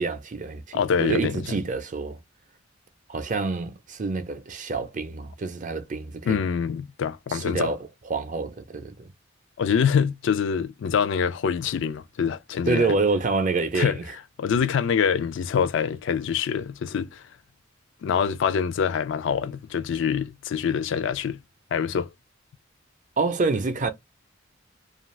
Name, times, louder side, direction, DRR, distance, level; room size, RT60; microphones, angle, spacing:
voice 1, 0.0-2.2 3.1-6.4 7.3-7.8 8.1-9.1 12.7-14.2 23.2-23.9, right 3 dB, 40° right, 0.5 m, -27 dB
voice 2, 0.7-1.5 6.2-7.7 9.6-12.9 13.7-14.0 14.4-17.2 18.0-21.4 21.7-22.1, left 7 dB, 70° left, 0.4 m, -25 dB
2.4 x 2.4 x 3.0 m
head